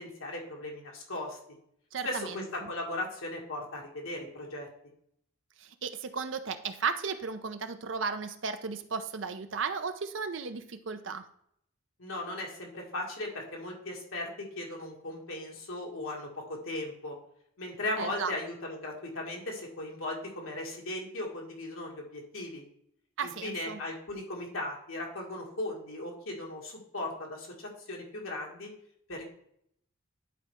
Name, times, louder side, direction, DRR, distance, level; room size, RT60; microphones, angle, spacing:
voice 1, 0.0-1.4 2.0-4.7 12.0-17.2 17.6-22.6 23.2-28.7 29.1-29.2, left 1 dB, 80° left, -1 dB, 2.0 m, -37 dB
voice 2, 1.9-2.7 5.6-11.3 18.0-18.3 23.2-23.8, right 5 dB, 60° right, 9 dB, 0.6 m, -35 dB
10.5 x 4.3 x 3.6 m, 0.70 s
head